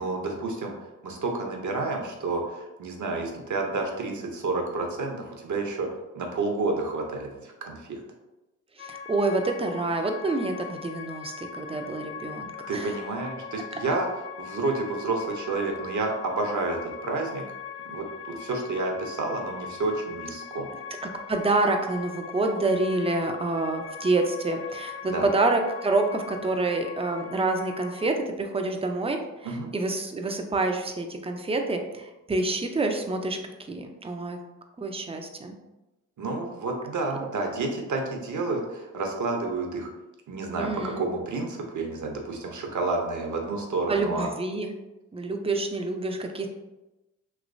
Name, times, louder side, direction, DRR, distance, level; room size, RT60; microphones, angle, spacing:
voice 1, 0.0-5.9 6.1-8.0 12.7-14.1 14.4-17.4 17.8-20.7 25.0-25.3 29.4-29.7 36.2-39.9 40.3-44.3, right 3 dB, 50° right, 2 dB, 0.8 m, -30 dB
sound 1, 8.8-28.1, left 7 dB, 35° left, 0.5 m, -41 dB
voice 2, 8.8-12.9 21.3-29.2 29.5-33.4 33.7-34.4 34.8-35.6 40.6-41.0 43.9-44.7 45.1-46.5, right 2 dB, 15° right, 4 dB, 0.5 m, -27 dB
3.1 x 2.9 x 2.5 m, 1.0 s
supercardioid pair, 45°, 37 cm